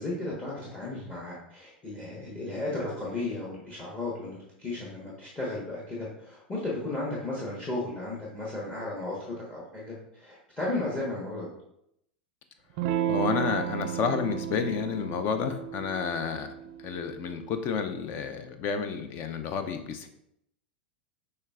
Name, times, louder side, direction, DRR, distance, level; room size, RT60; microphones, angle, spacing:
voice 1, 0.0-9.2 9.5-11.5, left 2 dB, 20° left, -5 dB, 1.2 m, -34 dB
Electric guitar / Strum, 12.8-17.9, right 10 dB, 55° right, 0.4 m, -34 dB
voice 2, 13.1-16.5 16.8-20.1, left 6 dB, 40° left, 8 dB, 0.5 m, -30 dB
6.4 x 3.2 x 2.4 m, 0.77 s
hypercardioid pair, 90°, 5 cm